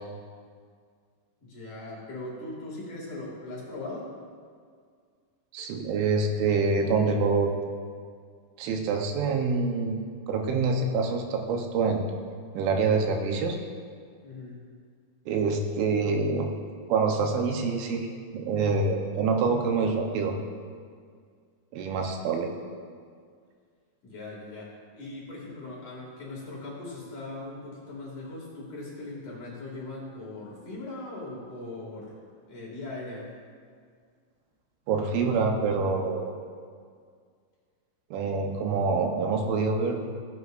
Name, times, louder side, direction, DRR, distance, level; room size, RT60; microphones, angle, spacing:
voice 1, 1.4-4.1 14.2-14.7 24.0-32.1 32.5-33.3, left 2 dB, 50° left, -5 dB, 3.2 m, -39 dB
voice 2, 5.5-7.5 8.6-10.0 10.3-12.0 12.5-13.6 15.3-16.5 16.9-18.1 18.3-20.3 21.7-22.5 34.9-36.3 38.1-40.0, right 4 dB, 85° right, 3 dB, 3.4 m, -26 dB
17.0 x 9.5 x 2.6 m, 2.1 s
omnidirectional pair, 5.3 m